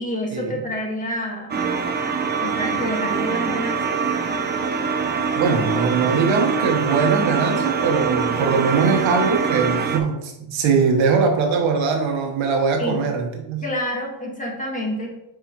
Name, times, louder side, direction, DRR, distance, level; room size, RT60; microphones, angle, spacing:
voice 1, 0.0-1.6 2.4-4.0 12.8-13.1 13.6-15.1, left 1 dB, 15° left, -1 dB, 1.6 m, -28 dB
sound 1, 1.5-10.0, right 6 dB, 25° right, 0.5 m, -24 dB
voice 2, 5.3-13.6, right 5 dB, 85° right, 2 dB, 1.5 m, -21 dB
8.8 x 5.0 x 3.1 m, 0.91 s
cardioid pair, 150°, 45 cm